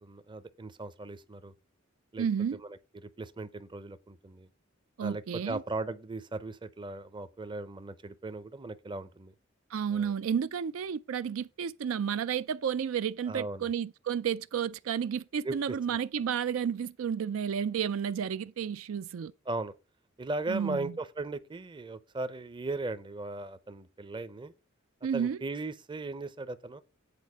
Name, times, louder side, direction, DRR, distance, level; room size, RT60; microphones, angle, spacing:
voice 1, 0.0-1.5 2.1-2.2 2.5-4.5 5.0-9.3 9.9-10.1 13.3-13.7 15.4-16.0 19.5-19.7 20.2-24.5 25.1-26.8, right 2 dB, 25° right, 0.6 m, -38 dB
voice 2, 2.2-2.6 5.0-5.6 9.7-19.3 20.5-20.9 25.0-25.4, right 7 dB, 75° right, 0.4 m, -31 dB
8.5 x 4.2 x 7.1 m
head